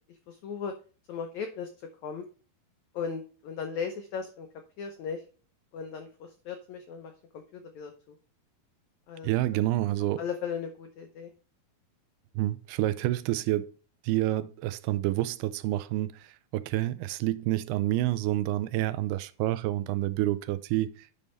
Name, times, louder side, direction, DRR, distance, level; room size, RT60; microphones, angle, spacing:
voice 1, 0.3-0.7 1.1-1.7 2.0-2.2 2.9-4.5 4.8-5.2 5.7-8.1 9.1-9.3 10.2-11.3, left 6 dB, 85° left, 1.6 m, -37 dB
voice 2, 9.2-10.2 12.4-13.7 14.0-21.1, right 15 dB, 90° right, 2.6 m, -28 dB
9.9 x 5.4 x 3.2 m
omnidirectional pair, 4.5 m